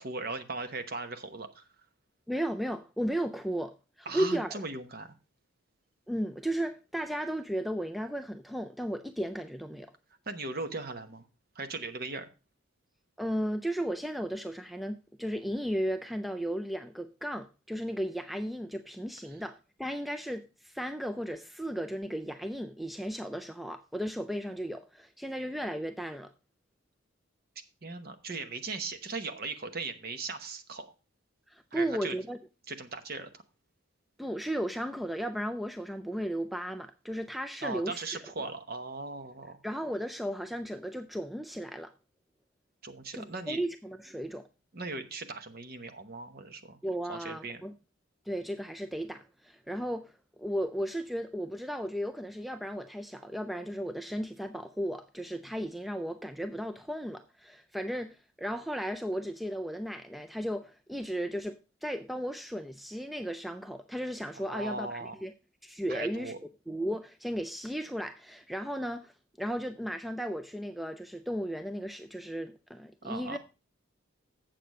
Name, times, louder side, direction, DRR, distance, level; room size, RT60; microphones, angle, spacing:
voice 1, 0.0-1.7 4.1-5.1 10.3-11.2 11.5-12.3 19.3-19.4 27.8-30.9 31.7-32.2 32.7-33.4 37.6-39.6 42.8-43.6 44.7-46.8 47.1-47.6 64.3-65.2 65.9-66.4 73.0-73.4, right 3 dB, 45° right, 1.0 m, -38 dB
voice 2, 2.3-4.6 6.1-9.9 13.2-26.3 31.5-32.4 34.2-38.0 39.6-41.9 43.1-44.5 46.8-47.7 48.3-50.1 50.4-65.3 65.6-66.3 66.7-69.1 69.4-73.4, equal, ahead, 0.3 m, -35 dB
7.8 x 6.7 x 5.3 m
head